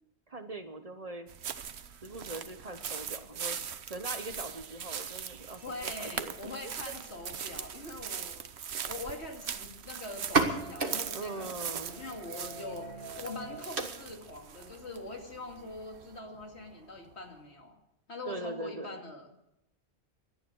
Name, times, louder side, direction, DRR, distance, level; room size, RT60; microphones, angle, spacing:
voice 1, 0.3-1.3 2.0-3.6 3.9-6.3 6.6-6.7 11.1-11.9 18.2-19.0, right 2 dB, 35° right, 9 dB, 1.0 m, -41 dB
sound 1, 1.3-16.2, right 8 dB, 75° right, 1.1 m, -41 dB
voice 2, 5.6-8.4 8.9-12.9 13.2-17.8 18.1-19.5, left 2 dB, 75° left, 3 dB, 2.8 m, -43 dB
sound 2, 10.2-17.6, right 4 dB, 50° right, 1.8 m, -37 dB
17.5 x 11.5 x 6.3 m, 0.83 s
omnidirectional pair, 1.1 m